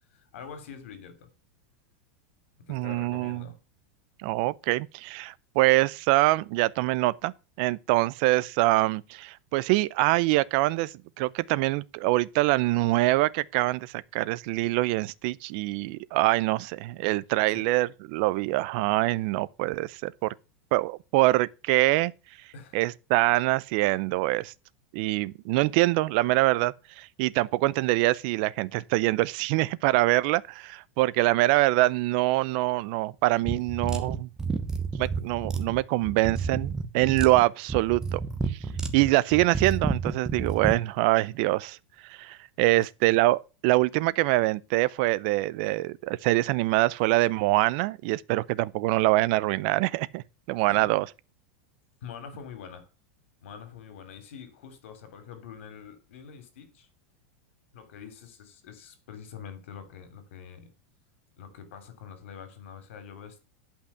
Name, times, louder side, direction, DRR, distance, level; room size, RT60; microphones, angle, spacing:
voice 1, 0.1-1.3 2.7-3.6 17.5-17.7 22.5-22.8 42.7-42.8 50.7-50.9 52.0-52.9 53.4-56.9 57.7-60.7 61.4-63.4, left 7 dB, 75° left, 3.1 m, -45 dB
voice 2, 2.7-3.4 4.2-7.3 7.6-20.3 20.7-22.1 22.7-24.5 24.9-34.3 35.0-38.2 38.5-38.6 38.9-41.8 42.0-51.1, right 19 dB, 50° right, 0.5 m, -24 dB
sound 1, 33.4-40.8, right 4 dB, 10° right, 1.0 m, -30 dB
10.5 x 5.7 x 5.7 m
supercardioid pair, 160°, 7 cm